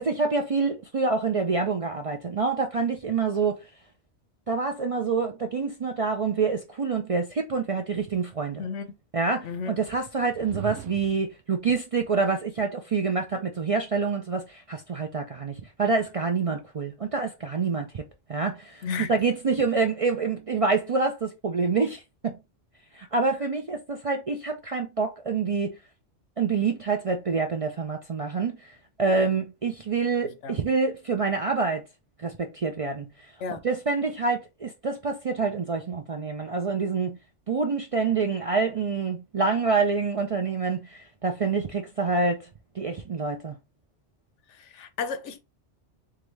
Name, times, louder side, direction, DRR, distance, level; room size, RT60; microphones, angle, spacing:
voice 1, 0.0-3.7 4.5-8.6 9.1-18.0 18.3-22.4 22.9-25.8 26.4-28.7 29.0-31.8 32.2-33.1 33.6-37.2 37.5-42.5 42.7-43.6, right 4 dB, 45° right, 0.4 m, -27 dB
voice 2, 9.4-9.7 18.8-19.1 30.4-30.6 33.4-33.6 44.5-45.4, left 5 dB, 85° left, 1.0 m, -33 dB
sound 1, 10.2-11.4, right 13 dB, 90° right, 0.9 m, -39 dB
3.8 x 3.5 x 3.2 m
omnidirectional pair, 1.2 m